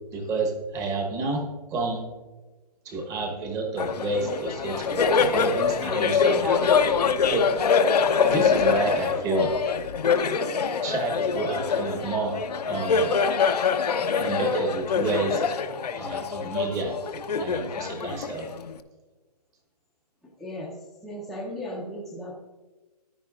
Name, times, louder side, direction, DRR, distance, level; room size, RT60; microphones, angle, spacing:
voice 1, 0.1-2.0 2.8-7.0 7.3-7.5 8.3-9.5 10.8-12.4 12.7-13.1 14.1-15.4 15.9-17.0 17.4-18.5, right 2 dB, 15° right, 3 dB, 1.1 m, -29 dB
Laughter, 3.8-18.8, left 6 dB, 70° left, 0.7 m, -24 dB
voice 2, 20.4-20.7 21.0-22.3, left 1 dB, ahead, -4 dB, 0.6 m, -36 dB
14.0 x 10.0 x 2.4 m, 1.2 s
hypercardioid pair, 150°, 21 cm